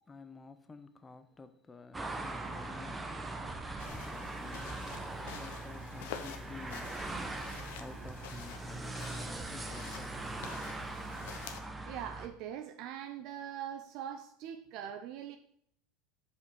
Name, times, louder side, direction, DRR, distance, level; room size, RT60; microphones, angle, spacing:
voice 1, 0.1-3.1 3.8-4.9 5.4-7.0 7.8-9.2 9.5-10.5, left 4 dB, 20° left, 0.7 m, -51 dB
sound 1, 1.9-12.3, right 2 dB, 15° right, 0.9 m, -41 dB
sound 2, 3.8-11.6, left 8 dB, 70° left, 0.8 m, -48 dB
voice 2, 7.7-8.0 11.9-15.4, right 9 dB, 60° right, 0.5 m, -42 dB
5.2 x 5.0 x 6.4 m
hypercardioid pair, 85°, 0 cm